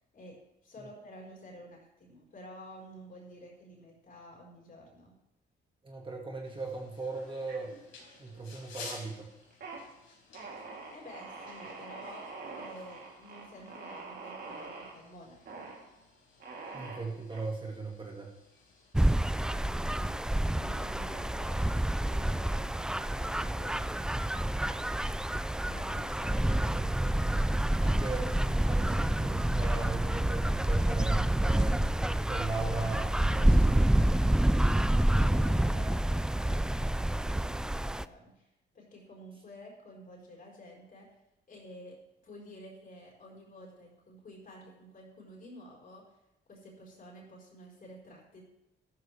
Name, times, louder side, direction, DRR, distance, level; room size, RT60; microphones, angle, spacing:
voice 1, 0.1-5.2 10.9-15.7 19.5-20.2 20.5-21.7 22.1-25.2 25.6-26.4 35.1-38.5 38.7-41.1 41.5-46.1 46.5-48.4, left 1 dB, 45° left, -2 dB, 4.8 m, -51 dB
voice 2, 5.8-7.7 8.2-9.3 16.7-18.3 26.1-27.4 27.8-32.0 32.3-33.9, right 3 dB, 25° right, 0 dB, 2.2 m, -38 dB
sound 1, 6.4-18.9, left 4 dB, 80° left, 4.5 m, -54 dB
sound 2, 7.5-8.2 8.6-9.1 9.4-9.8 10.3-14.9 15.5-15.8 16.4-17.4, right 4 dB, 55° right, 3.3 m, -45 dB
sound 3, 18.9-38.0, right 1 dB, 5° right, 0.3 m, -28 dB
13.5 x 13.0 x 3.5 m, 0.88 s
cardioid pair, 90°, 20 cm